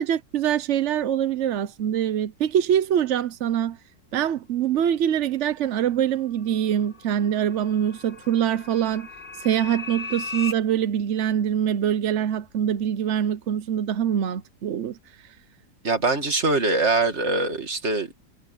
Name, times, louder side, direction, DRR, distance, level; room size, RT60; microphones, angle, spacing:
voice 1, 0.0-3.8 4.1-9.1 9.4-15.0 15.2-15.3, right 9 dB, 60° right, 0.8 m, -24 dB
sound 1, 6.2-10.5, left 4 dB, 30° left, 1.8 m, -38 dB
voice 2, 15.8-18.1, right 3 dB, 40° right, 2.5 m, -23 dB
omnidirectional pair, 1.8 m